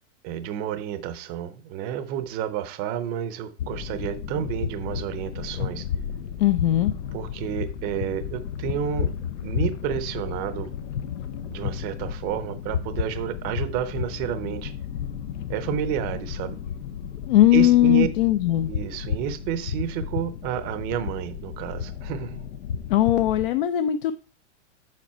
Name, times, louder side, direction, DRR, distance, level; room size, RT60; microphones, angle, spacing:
voice 1, 0.2-5.8 7.1-9.1 9.4-10.7 11.5-14.7 15.5-16.6 17.5-18.1 18.7-22.4, right 9 dB, 25° right, 0.6 m, -30 dB
sound 1, 3.6-23.5, left 8 dB, 80° left, 0.8 m, -33 dB
voice 2, 6.4-6.9 17.3-18.7 22.9-24.1, left 13 dB, 50° left, 0.5 m, -19 dB
7.5 x 5.2 x 4.2 m
supercardioid pair, 155°, 36 cm